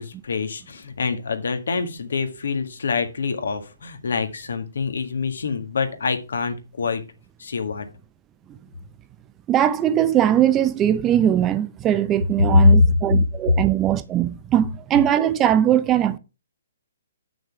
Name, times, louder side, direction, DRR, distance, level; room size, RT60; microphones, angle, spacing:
voice 1, 0.0-7.0 7.4-7.9 12.5-12.8, left 4 dB, 75° left, 1.7 m, -24 dB
voice 2, 9.5-16.2, right 11 dB, 20° right, 0.5 m, -20 dB
7.3 x 6.2 x 4.7 m
hypercardioid pair, 145°, 0 cm